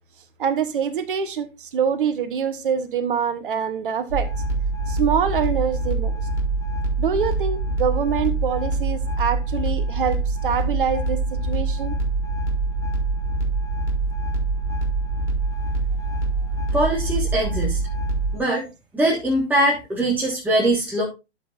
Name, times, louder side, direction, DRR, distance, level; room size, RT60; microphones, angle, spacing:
voice 1, 0.4-4.3 4.9-6.1 7.0-11.9, right 7 dB, 50° right, 1.3 m, -25 dB
sound 1, 4.1-18.4, right 2 dB, 80° left, 5.8 m, -25 dB
voice 2, 16.7-17.8 18.3-18.6 18.9-21.0, right 1 dB, 5° right, 1.6 m, -22 dB
11.5 x 7.6 x 2.5 m
figure-of-eight pair, 125°, 35 cm